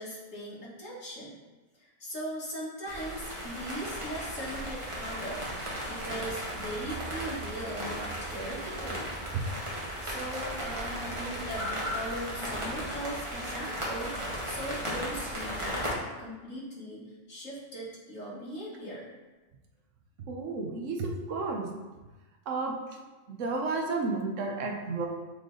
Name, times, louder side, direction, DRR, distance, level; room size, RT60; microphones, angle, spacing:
voice 1, 0.0-1.3 1.8-5.6 5.9-9.2 10.0-19.0, equal, 65° left, -6 dB, 2.1 m, -39 dB
sound 1, 2.9-15.9, equal, 25° right, 1.4 m, -36 dB
voice 2, 20.3-21.7 22.5-22.8 23.3-25.1, right 3 dB, 65° right, 1 dB, 1.2 m, -32 dB
7.3 x 3.4 x 3.9 m, 1.2 s
omnidirectional pair, 1.4 m